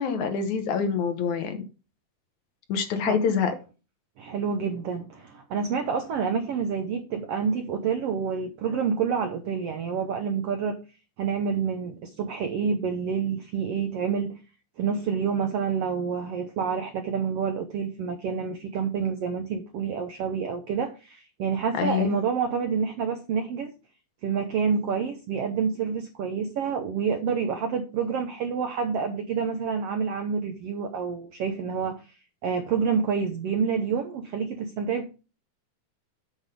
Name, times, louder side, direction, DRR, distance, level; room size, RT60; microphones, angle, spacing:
voice 1, 0.0-1.6 2.7-3.5 21.7-22.2, left 6 dB, 65° left, 2.2 m, -26 dB
voice 2, 4.2-10.8 11.2-14.4 14.8-23.7 24.2-32.2 32.4-35.1, right 6 dB, 80° right, 1.3 m, -28 dB
7.7 x 6.3 x 5.2 m
omnidirectional pair, 3.9 m